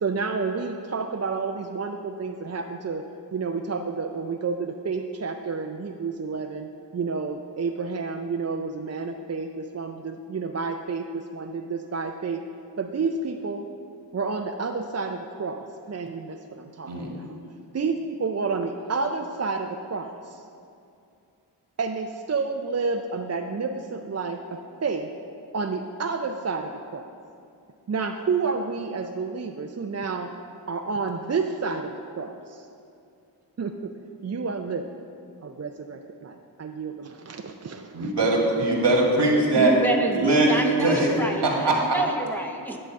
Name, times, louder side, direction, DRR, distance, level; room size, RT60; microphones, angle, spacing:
voice 1, 0.0-12.4 12.8-13.7 14.1-17.4 17.7-20.4 21.8-25.1 25.5-27.1 27.9-30.4 30.7-32.7 33.6-33.9 34.2-35.0 35.4-38.1, right 4 dB, 40° right, 4 dB, 0.5 m, -30 dB
voice 2, 37.9-39.7 40.1-40.5 40.8-41.1 41.4-41.9, right 2 dB, 80° right, -1 dB, 1.8 m, -21 dB
voice 3, 39.5-42.8, right 1 dB, 5° left, 1 dB, 0.9 m, -28 dB
10.5 x 4.0 x 7.5 m, 2.5 s
cardioid pair, 55°, 41 cm